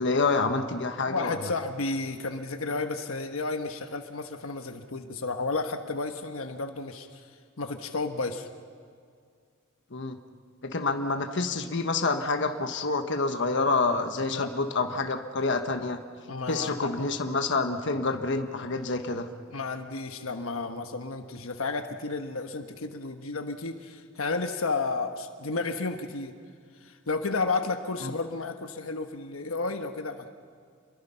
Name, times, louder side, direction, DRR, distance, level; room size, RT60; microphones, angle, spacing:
voice 1, 0.0-1.3 9.9-10.2 10.6-16.0 16.5-19.3, left 3 dB, 60° left, 7 dB, 1.3 m, -27 dB
voice 2, 1.1-7.3 7.6-8.5 14.2-14.5 16.3-16.9 19.5-26.3 26.8-30.3, left 3 dB, 75° left, 6 dB, 1.2 m, -32 dB
28.5 x 22.5 x 5.7 m, 2.1 s
head